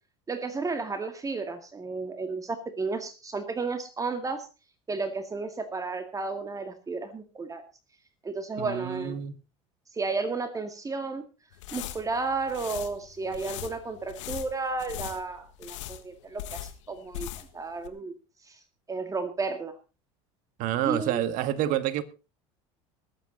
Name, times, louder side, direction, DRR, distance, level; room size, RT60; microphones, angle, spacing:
voice 1, 0.3-4.5 4.9-7.6 8.2-9.2 9.9-11.2 11.7-17.3 17.5-18.1 18.5-18.6 18.9-19.7 20.9-21.2, right 3 dB, 20° right, 8 dB, 2.1 m, -32 dB
voice 2, 8.6-9.3 20.6-22.0, right 12 dB, 60° right, 12 dB, 1.7 m, -28 dB
sound 1, 11.5-17.6 17.8-17.9, left 13 dB, 80° left, 1.6 m, -40 dB
21.0 x 8.9 x 4.0 m, 0.31 s
hypercardioid pair, 90°, 15 cm